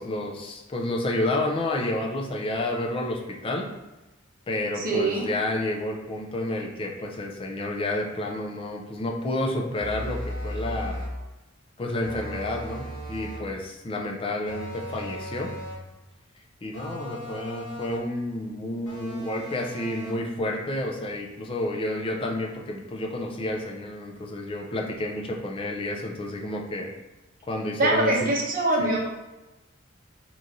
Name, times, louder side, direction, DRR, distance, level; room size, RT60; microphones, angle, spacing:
voice 1, 0.0-3.7 4.5-11.0 11.8-15.5 16.6-26.9 27.5-28.3 28.8-29.0, left 1 dB, 25° left, 0 dB, 0.5 m, -30 dB
voice 2, 4.8-5.3 27.8-29.1, right 2 dB, 45° right, -3 dB, 0.8 m, -23 dB
sound 1, 9.8-11.2 12.0-13.5 14.5-15.9 16.7-18.2 18.9-20.3, equal, 70° left, 1.2 m, -37 dB
3.7 x 3.0 x 2.6 m, 1.0 s
head